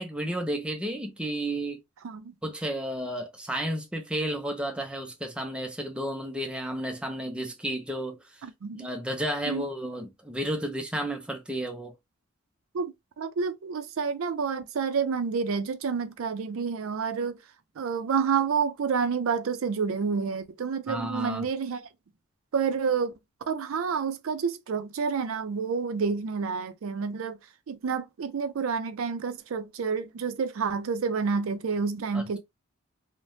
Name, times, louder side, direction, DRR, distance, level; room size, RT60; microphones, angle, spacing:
voice 1, 0.0-1.8 2.4-8.2 8.7-11.9 20.9-21.5 32.1-32.4, right 1 dB, 5° right, 0.4 m, -32 dB
voice 2, 2.0-2.3 8.4-8.9 9.5-9.6 12.7-17.4 17.8-21.9 22.5-23.1 23.5-27.4 27.7-32.4, right 5 dB, 80° right, 0.4 m, -29 dB
3.2 x 2.1 x 2.6 m
head